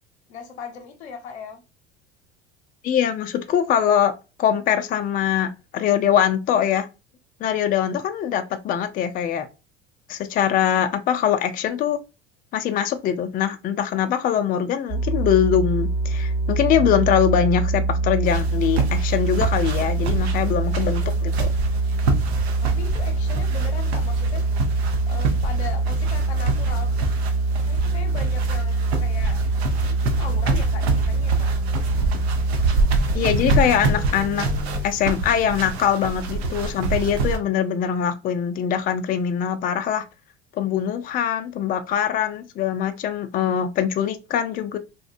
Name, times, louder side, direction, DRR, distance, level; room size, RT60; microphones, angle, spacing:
voice 1, 0.3-1.6 20.0-20.3 22.8-24.4 25.1-27.1 27.7-31.5, left 6 dB, 85° left, 0.6 m, -38 dB
voice 2, 2.8-4.1 4.4-6.9 7.4-9.5 10.1-12.0 12.5-21.5 33.1-34.5 34.8-40.0 40.5-44.8, left 9 dB, 30° left, 0.3 m, -22 dB
sound 1, 14.9-34.8, right 3 dB, 45° right, 1.0 m, -24 dB
sound 2, 18.3-37.4, right 3 dB, 80° right, 0.5 m, -27 dB
2.7 x 2.1 x 2.4 m
hypercardioid pair, 80°, 32 cm